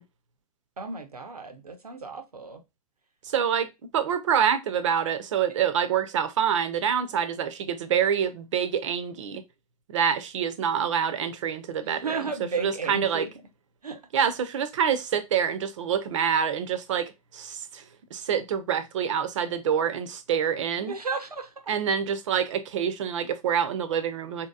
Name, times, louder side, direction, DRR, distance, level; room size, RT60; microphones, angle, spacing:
voice 1, 0.8-2.6 11.9-13.3 13.8-14.0 20.8-21.7, right 4 dB, 85° right, 0.9 m, -34 dB
voice 2, 3.2-9.4 9.9-12.2 12.6-13.3 14.1-17.8 18.1-20.9 21.7-24.5, right 8 dB, 55° right, 0.7 m, -26 dB
4.4 x 2.9 x 2.4 m
figure-of-eight pair, 115°, 19 cm